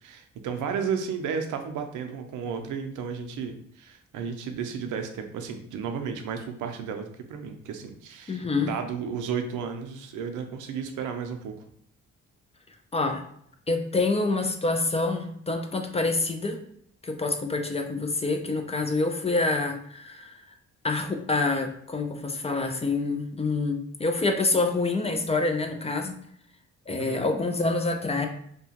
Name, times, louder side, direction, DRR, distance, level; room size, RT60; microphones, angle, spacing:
voice 1, 0.0-11.5 27.0-27.2, right 6 dB, 90° right, 6 dB, 0.5 m, -33 dB
voice 2, 8.3-8.7 12.9-13.2 13.7-16.6 17.0-20.3 20.8-26.1 26.9-28.3, left 3 dB, 20° left, 5 dB, 0.4 m, -27 dB
2.7 x 2.2 x 2.8 m, 0.69 s
cardioid pair, 80°, 30 cm